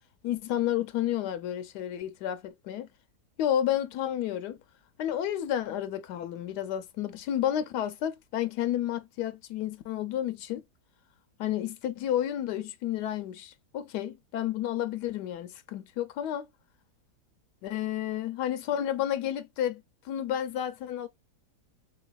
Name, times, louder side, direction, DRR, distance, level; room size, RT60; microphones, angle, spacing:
voice 1, 0.2-2.9 3.4-4.6 5.0-10.6 11.4-16.4 17.6-21.1, left 11 dB, 80° left, 1.2 m, -31 dB
3.4 x 3.0 x 2.3 m
omnidirectional pair, 1.8 m